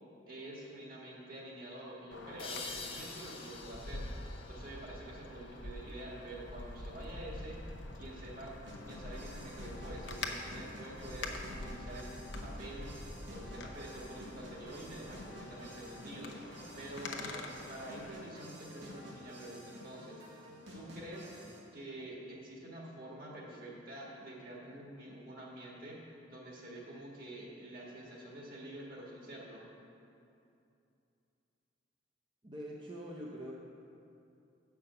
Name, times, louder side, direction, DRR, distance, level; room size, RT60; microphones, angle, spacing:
voice 1, 0.3-8.5 8.9-12.1 12.4-12.9 13.3-16.3 16.8-20.4 20.7-21.3 21.7-26.0 26.3-29.7, right 1 dB, 50° right, -3 dB, 1.7 m, -47 dB
Wind, 2.1-18.1, left 2 dB, 75° left, 0.8 m, -46 dB
sound 1, 2.4-5.8, left 4 dB, 30° left, 0.7 m, -47 dB
sound 2, 8.7-21.6, equal, 80° right, 1.6 m, -50 dB
voice 2, 32.4-33.5, equal, 25° right, -4 dB, 0.6 m, -44 dB
7.8 x 5.7 x 6.7 m, 2.7 s
head